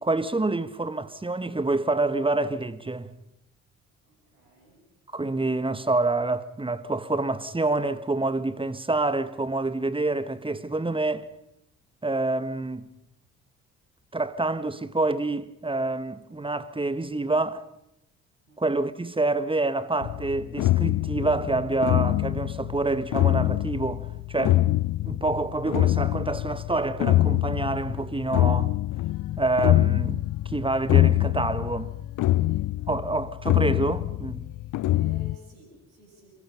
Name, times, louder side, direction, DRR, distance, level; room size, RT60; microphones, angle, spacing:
voice 1, 0.0-3.1 5.1-11.3 12.0-12.9 14.1-17.6 18.6-24.6 25.0-28.7 29.4-31.9 32.9-34.5, right 2 dB, 15° right, 1.5 m, -27 dB
voice 2, 4.1-4.9 18.5-18.9 32.4-33.0 34.9-36.3, right 1 dB, 75° right, 6.9 m, -54 dB
sound 1, 20.0-35.4, left 15 dB, 50° left, 0.7 m, -25 dB
27.0 x 23.5 x 5.6 m
figure-of-eight pair, 45°, 41 cm